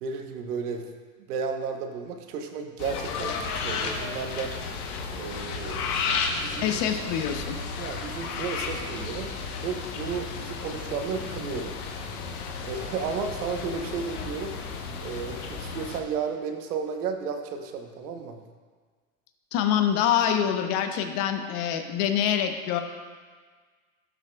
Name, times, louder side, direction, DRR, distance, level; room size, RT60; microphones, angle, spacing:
voice 1, 0.0-0.9 1.3-4.5 5.1-6.7 7.8-9.3 9.6-11.7 12.6-14.5 15.0-18.4, right 5 dB, 90° right, 5 dB, 1.0 m, -33 dB
sound 1, 2.8-16.0, left 5 dB, 85° left, 1.0 m, -33 dB
voice 2, 6.6-7.6 19.5-22.8, left 9 dB, 50° left, 7 dB, 0.8 m, -25 dB
12.0 x 6.3 x 2.3 m, 1.5 s
supercardioid pair, 120°, 44 cm